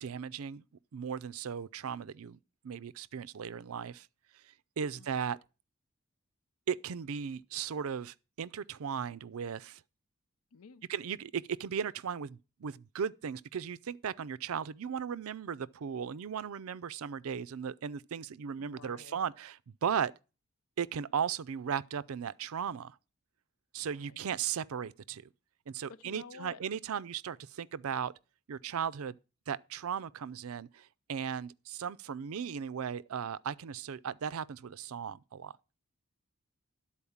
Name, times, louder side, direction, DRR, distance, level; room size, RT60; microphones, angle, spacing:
voice 1, 0.0-0.6 0.9-2.4 2.6-4.1 4.8-5.4 6.7-9.8 10.9-20.1 20.8-23.0 23.7-25.3 25.7-28.1 28.5-29.1 29.5-35.5, right 7 dB, 75° right, 0.4 m, -36 dB
voice 2, 10.5-10.8 18.6-19.3 23.9-24.2 25.9-26.6, left 5 dB, 75° left, 0.5 m, -52 dB
11.5 x 4.3 x 7.1 m
head